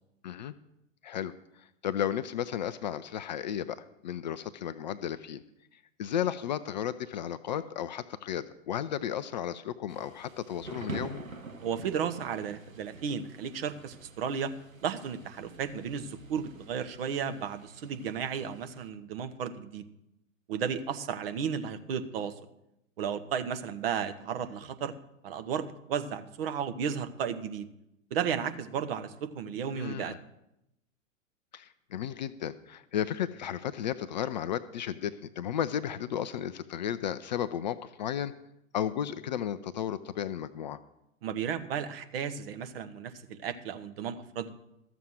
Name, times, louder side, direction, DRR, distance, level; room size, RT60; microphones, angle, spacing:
voice 1, 0.2-0.5 1.0-5.4 5.7-11.2 29.7-30.2 31.5-38.3 38.7-40.8, left 10 dB, 35° left, 13 dB, 0.4 m, -34 dB
Thunder / Rain, 9.9-18.9, right 3 dB, 85° right, 1.1 m, -46 dB
voice 2, 11.6-14.5 14.8-19.8 20.5-22.3 23.0-24.9 25.2-27.7 28.1-30.1 41.2-44.6, right 7 dB, 45° right, 9 dB, 1.0 m, -34 dB
13.5 x 7.1 x 6.2 m, 0.86 s
figure-of-eight pair, 105°, 39 cm